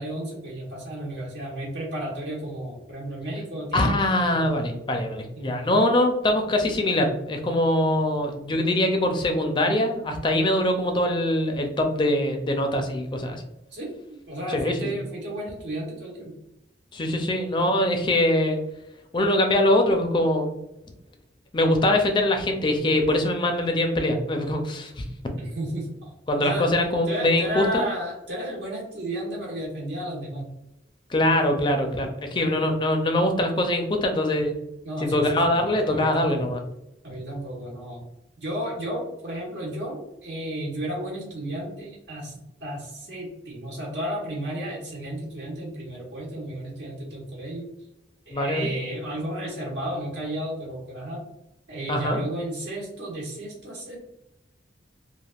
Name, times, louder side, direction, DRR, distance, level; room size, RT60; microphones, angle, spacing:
voice 1, 0.0-4.5 5.3-5.7 13.7-16.3 25.4-26.7 27.1-30.5 34.8-36.4 37.0-38.0 38.4-47.7 48.3-51.2 51.7-54.0, right 1 dB, 80° right, -4 dB, 1.3 m, -33 dB
voice 2, 3.7-13.4 14.5-14.9 16.9-18.6 19.1-20.6 21.5-25.0 26.3-27.9 31.1-34.5 35.0-36.6 48.3-48.7 51.9-52.2, left 1 dB, 25° left, 4 dB, 0.4 m, -23 dB
3.3 x 2.4 x 2.4 m, 0.88 s
head